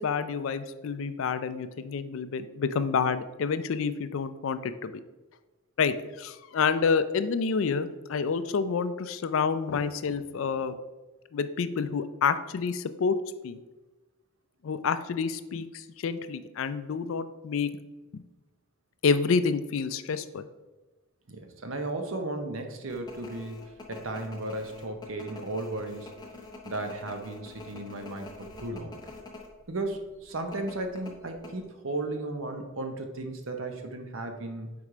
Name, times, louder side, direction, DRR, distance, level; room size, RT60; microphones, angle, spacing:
voice 1, 0.0-4.9 5.8-10.7 11.3-13.2 13.4-13.6 14.6-17.7 18.1-18.2 19.0-20.5, left 5 dB, 65° left, 12 dB, 0.4 m, -28 dB
voice 2, 21.3-23.6 23.9-26.1 26.6-28.9 29.7-34.7, right 2 dB, 65° right, 5 dB, 0.8 m, -35 dB
sound 1, 22.9-29.5 29.8-29.9 30.5-31.5, left 2 dB, 20° left, 0.8 m, -45 dB
4.7 x 4.2 x 4.9 m, 1.1 s
head